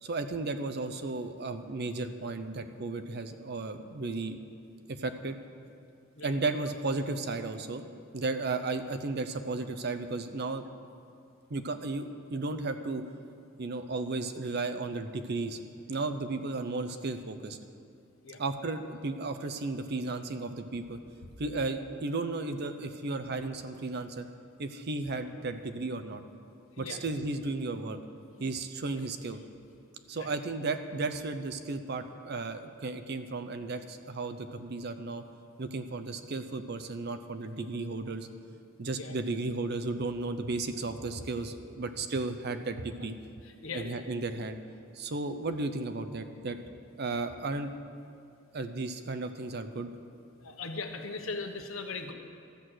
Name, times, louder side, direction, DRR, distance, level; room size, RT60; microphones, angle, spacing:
voice 1, 0.0-4.4 4.9-5.4 6.2-7.8 8.1-10.6 11.5-13.0 13.6-15.6 15.9-17.6 18.4-21.0 21.4-24.3 24.6-26.2 26.8-28.0 28.4-29.4 30.1-35.2 35.6-38.3 38.8-43.1 43.7-44.6 44.9-46.6 47.0-47.7 48.5-49.9, right 3 dB, 55° right, 9 dB, 0.6 m, -34 dB
voice 2, 43.6-44.0 50.4-52.1, left 4 dB, 85° left, 5 dB, 1.1 m, -39 dB
13.0 x 6.4 x 7.7 m, 2.5 s
head